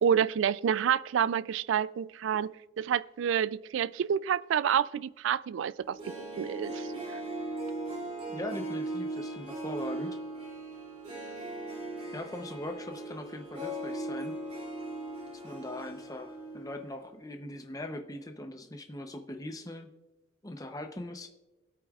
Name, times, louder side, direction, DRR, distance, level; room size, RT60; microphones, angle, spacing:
voice 1, 0.0-6.0 6.4-6.9, right 8 dB, 75° right, 0.3 m, -28 dB
Harp, 5.8-16.8 17.1-17.2, right 2 dB, 30° right, 2.8 m, -38 dB
voice 2, 8.3-10.2 12.1-14.4 15.4-19.9 20.4-21.3, left 1 dB, 20° left, 0.7 m, -40 dB
23.5 x 8.5 x 2.4 m
head